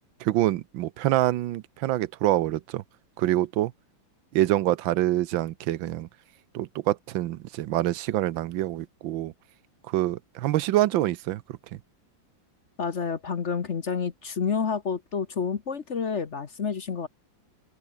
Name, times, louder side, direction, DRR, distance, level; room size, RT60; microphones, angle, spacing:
voice 1, 0.2-2.8 3.2-3.7 4.3-6.1 6.5-9.3 9.9-11.4, right 14 dB, 85° right, 1.5 m, -26 dB
voice 2, 12.8-17.1, left 6 dB, 45° left, 1.2 m, -29 dB
omnidirectional pair, 2.1 m